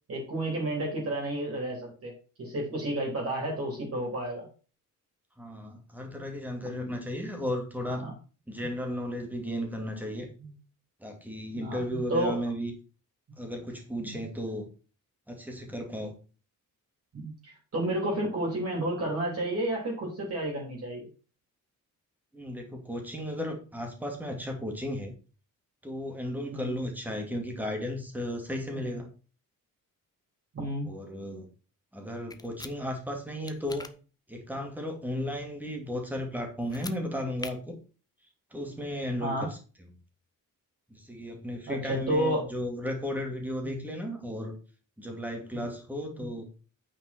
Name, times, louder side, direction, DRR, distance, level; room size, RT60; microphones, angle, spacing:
voice 1, 0.1-2.1 2.4-4.5 6.6-7.0 7.9-8.1 10.4-10.5 11.5-12.4 14.0-14.2 17.1-21.0 26.5-26.8 28.7-28.9 30.5-30.9 39.2-39.5 41.7-42.4 43.6-43.9 45.5-45.6 46.2-46.3, right 1 dB, 45° right, -2 dB, 3.5 m, -31 dB
voice 2, 5.4-8.1 8.5-10.3 11.0-12.7 13.4-14.7 15.3-16.2 22.3-25.1 25.8-29.1 30.9-31.5 31.9-33.9 34.3-37.8 38.5-39.5 40.9-44.5 45.0-46.5, equal, 5° right, 2 dB, 2.2 m, -34 dB
sound 1, 32.3-32.7 33.5-33.9 36.6-37.0 37.4-37.5, left 3 dB, 10° left, 0.6 m, -41 dB
8.8 x 5.7 x 4.3 m, 0.36 s
wide cardioid pair, 165°, 33 cm